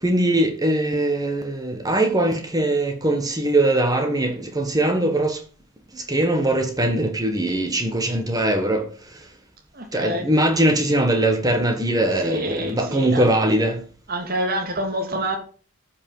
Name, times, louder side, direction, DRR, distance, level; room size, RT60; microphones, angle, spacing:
voice 1, 0.0-5.4 5.9-9.2 9.9-13.8, right 1 dB, 15° right, 1.5 m, -21 dB
voice 2, 9.7-10.2 12.2-13.2 14.1-15.4, right 1 dB, 45° right, 2.3 m, -27 dB
14.0 x 6.0 x 5.6 m
head